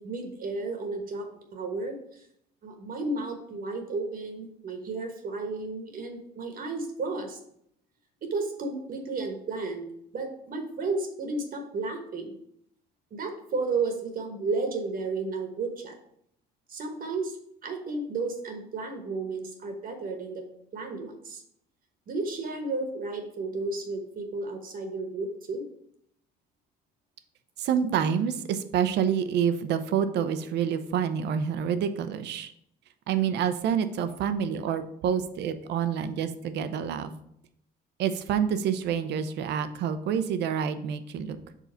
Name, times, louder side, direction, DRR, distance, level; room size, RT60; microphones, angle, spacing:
voice 1, 0.0-2.2 2.6-7.4 8.2-9.9 10.1-12.3 13.1-15.9 16.7-17.4 17.6-20.4 20.7-21.4 22.1-25.6, right 3 dB, 50° right, 4 dB, 1.1 m, -33 dB
voice 2, 27.6-32.5 33.1-37.1 38.0-41.4, right 8 dB, 70° right, 11 dB, 0.6 m, -27 dB
5.0 x 3.8 x 5.5 m, 0.72 s
cardioid pair, 105°, 18 cm